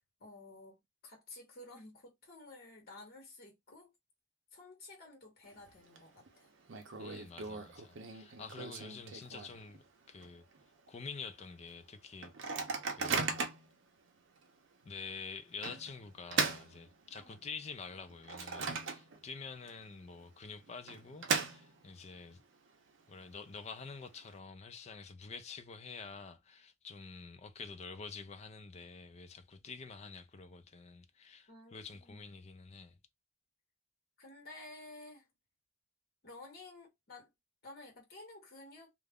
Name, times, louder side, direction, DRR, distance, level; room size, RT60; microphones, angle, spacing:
voice 1, 0.2-3.9 4.5-6.5 8.6-8.9 17.2-17.4 31.5-32.4 34.2-35.3 36.2-37.3 37.6-38.9, left 2 dB, 50° left, 0.9 m, -53 dB
Microwave oven, 5.4-6.0 6.3-6.4 6.7-9.8 10.2-10.3 10.5-10.9 11.4-11.5 12.2-13.7 14.4-14.5 15.6-17.4 17.9-19.4 19.7-19.8 20.6-22.0, right 5 dB, 70° right, 0.6 m, -37 dB
voice 2, 7.0-10.5 10.9-12.6 12.9-13.4 14.8-22.4 23.1-33.0, left 5 dB, 35° left, 0.4 m, -48 dB
2.4 x 2.0 x 3.4 m
head